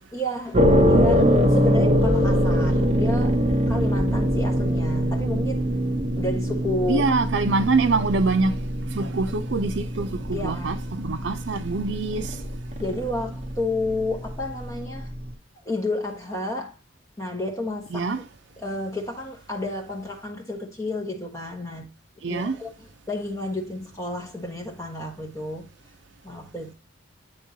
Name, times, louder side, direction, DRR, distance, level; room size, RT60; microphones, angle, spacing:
voice 1, 0.1-3.4 3.7-5.7 6.2-7.1 7.4-7.7 10.3-10.8 12.8-15.1 15.6-16.8 17.2-18.2 18.6-21.9 22.2-25.7 26.2-26.7, left 2 dB, 15° left, 1.3 m, -31 dB
sound 1, 0.5-15.3, equal, 35° right, 0.8 m, -23 dB
voice 2, 6.9-8.6 8.9-12.4 17.9-18.2 22.2-22.6, right 3 dB, 60° right, 0.5 m, -24 dB
9.5 x 3.6 x 2.7 m
head